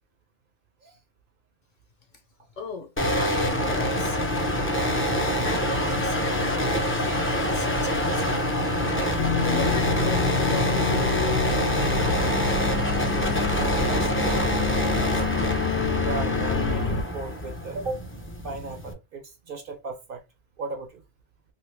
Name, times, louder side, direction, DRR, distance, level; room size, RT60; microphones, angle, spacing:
voice 1, 2.6-4.2 4.5-11.2, left 4 dB, 50° left, 0.8 m, -38 dB
sound 1, 3.0-18.9, equal, 15° left, 0.5 m, -26 dB
sound 2, 9.2-17.0, left 6 dB, 85° left, 0.9 m, -27 dB
voice 2, 13.6-14.5 14.9-15.5 16.0-18.0 18.4-20.2 20.6-21.0, right 3 dB, 60° right, 0.7 m, -36 dB
2.6 x 2.5 x 3.2 m
omnidirectional pair, 1.1 m